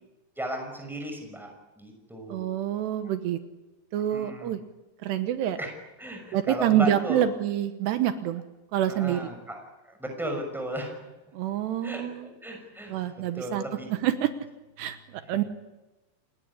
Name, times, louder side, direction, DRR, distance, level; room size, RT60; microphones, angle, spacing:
voice 1, 0.4-2.6 4.1-4.5 5.6-5.7 6.0-7.2 8.9-11.0 11.8-13.9 15.2-15.4, right 1 dB, ahead, 3 dB, 5.7 m, -36 dB
voice 2, 2.3-3.4 3.9-4.6 5.0-5.6 6.3-8.4 8.7-9.2 11.3-12.3 12.9-13.6 13.9-14.3 14.8-15.4, right 11 dB, 80° right, 9 dB, 3.2 m, -27 dB
29.0 x 19.0 x 10.0 m, 1.1 s
omnidirectional pair, 4.9 m